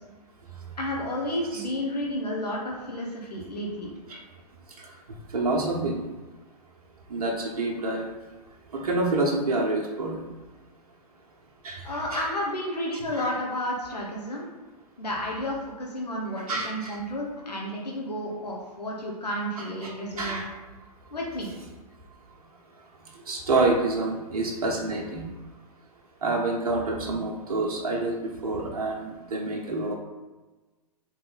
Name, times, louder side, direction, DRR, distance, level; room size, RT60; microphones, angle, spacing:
voice 1, 0.8-3.9 11.8-14.5 15.0-20.4 21.1-21.5, left 1 dB, 80° left, -3 dB, 1.0 m, -31 dB
voice 2, 5.3-6.0 7.1-8.1 8.7-10.2 11.6-12.2 13.1-13.3 16.5-17.0 19.6-19.9 20.2-20.5 23.3-25.2 26.2-28.2 28.4-30.0, right 2 dB, 65° right, -1 dB, 0.9 m, -27 dB
4.0 x 3.2 x 3.9 m, 1.2 s
figure-of-eight pair, 115°, 20 cm